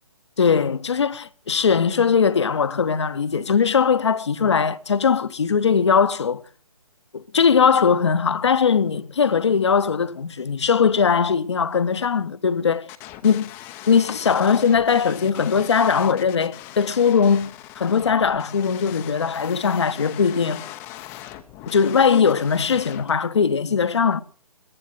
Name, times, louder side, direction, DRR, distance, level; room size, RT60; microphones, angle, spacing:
voice 1, 0.4-6.4 7.1-12.9 13.2-13.5 13.9-20.6 21.7-24.2, left 6 dB, 50° left, 1.0 m, -20 dB
sound 1, 12.9-23.1, left 14 dB, 10° left, 0.7 m, -40 dB
21.5 x 8.3 x 7.3 m
figure-of-eight pair, 140°, 19 cm